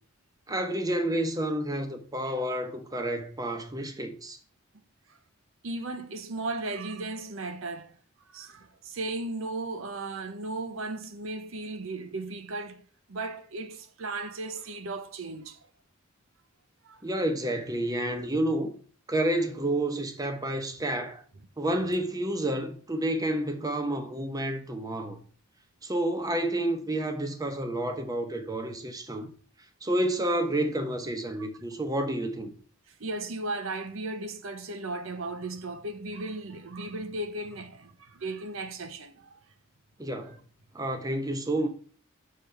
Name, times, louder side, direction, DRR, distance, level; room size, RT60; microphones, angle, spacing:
voice 1, 0.5-4.4 17.0-18.7 19.1-21.2 21.6-25.2 25.8-29.3 29.8-32.5 40.0-40.4 40.7-41.7, right 1 dB, 20° right, 0.8 m, -29 dB
voice 2, 5.6-8.0 8.3-12.8 13.1-15.6 16.8-17.0 31.4-31.5 33.0-39.4 40.3-40.4, right 2 dB, 75° right, 0.7 m, -36 dB
6.6 x 3.4 x 5.7 m
head